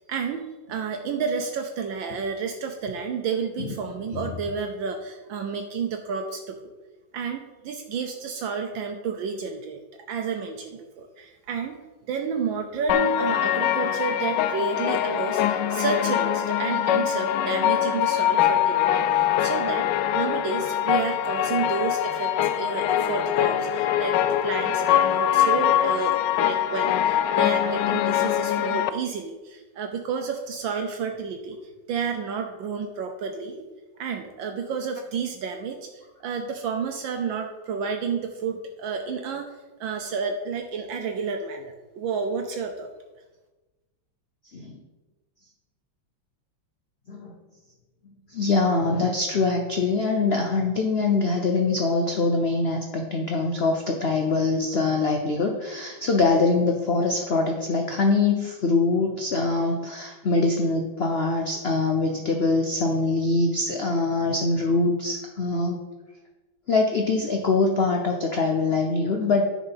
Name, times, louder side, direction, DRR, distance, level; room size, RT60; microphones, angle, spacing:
voice 1, 0.1-6.7 7.1-9.8 10.1-11.8 12.1-19.9 20.1-31.6 31.9-33.7 34.0-39.5 39.8-42.9, right 5 dB, 75° right, 4 dB, 1.5 m, -30 dB
sound 1, 12.9-28.9, left 11 dB, 75° left, 1.0 m, -23 dB
voice 2, 48.3-65.8 66.7-69.4, left 3 dB, 55° left, 2 dB, 0.6 m, -23 dB
10.0 x 5.0 x 5.8 m, 1.2 s
omnidirectional pair, 2.2 m